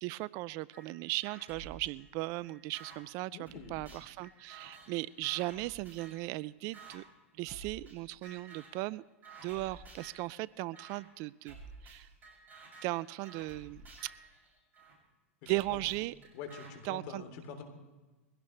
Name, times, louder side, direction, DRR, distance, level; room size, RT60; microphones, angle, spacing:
voice 1, 0.0-7.0 7.4-9.0 9.4-11.6 11.8-12.1 12.8-14.1 15.5-16.1 16.8-17.2, right 20 dB, 45° right, 21 dB, 0.4 m, -37 dB
sound 1, 0.7-0.9 1.2-3.0 3.5-6.3 6.7-7.0 7.5-8.0 8.2-8.8 9.2-10.2 10.7-11.0 11.5-14.9 15.5-16.7, right 4 dB, 25° right, 7.1 m, -52 dB
voice 2, 3.3-3.8 15.4-15.8 16.3-17.6, left 6 dB, 55° left, 5 dB, 3.4 m, -45 dB
22.5 x 17.0 x 3.3 m, 1.2 s
hypercardioid pair, 105°, 7 cm